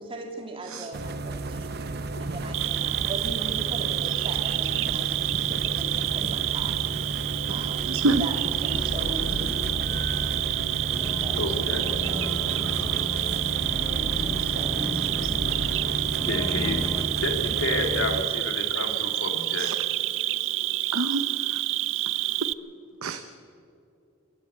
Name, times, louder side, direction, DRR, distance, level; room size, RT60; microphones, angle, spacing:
voice 1, 0.0-1.8 2.2-6.8 7.5-9.8 11.2-11.7 12.0-12.5 13.9-15.5 16.7-16.8 19.2-19.3, right 1 dB, 25° right, 2 dB, 2.5 m, -39 dB
sound 1, 0.9-18.2, right 2 dB, 50° right, 0.9 m, -33 dB
Cricket, 2.5-22.5, right 16 dB, 65° right, 0.5 m, -28 dB
voice 2, 7.9-8.3 12.9-13.0 19.6-19.8 20.9-21.2 23.0-23.2, right 2 dB, 85° right, 7 dB, 0.9 m, -26 dB
sound 2, 8.7-17.1, left 1 dB, 15° left, 0.7 m, -35 dB
voice 3, 11.4-11.8 16.2-16.8 17.2-19.7, left 2 dB, 75° left, 4 dB, 2.2 m, -30 dB
26.5 x 13.0 x 8.3 m, 2.6 s
head